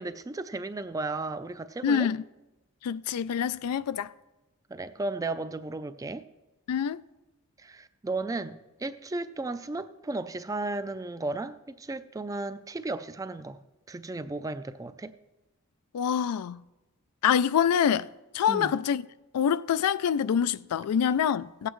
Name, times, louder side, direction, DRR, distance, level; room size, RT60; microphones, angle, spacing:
voice 1, 0.0-2.1 4.7-6.2 7.6-13.6 13.9-15.1 18.5-18.7, right 2 dB, 15° right, 0.3 m, -34 dB
voice 2, 1.8-2.2 2.8-4.1 6.7-7.0 15.9-16.6 17.2-18.1 18.3-19.0 19.3-21.7, left 8 dB, 85° left, 0.3 m, -26 dB
16.5 x 8.2 x 3.1 m
head